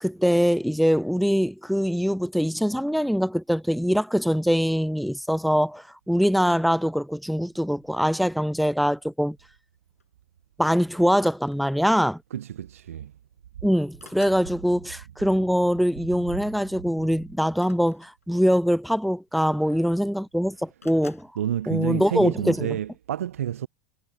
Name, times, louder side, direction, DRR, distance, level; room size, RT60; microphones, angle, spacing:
voice 1, 0.0-9.4 10.6-12.2 13.6-21.3 21.7-22.8, equal, ahead, 0.6 m, -23 dB
sound 1, 6.2-6.8 7.7-8.0 9.5-9.7 10.0-10.2 11.1-11.9 12.9-13.0 13.3-14.5 17.5-18.6 19.5-19.6 19.8-20.3 20.8-21.3, left 4 dB, 85° left, 7.5 m, -52 dB
voice 2, 12.3-13.1 19.6-19.8 21.4-23.7, right 11 dB, 75° right, 1.0 m, -29 dB
figure-of-eight pair, 80°, 8 cm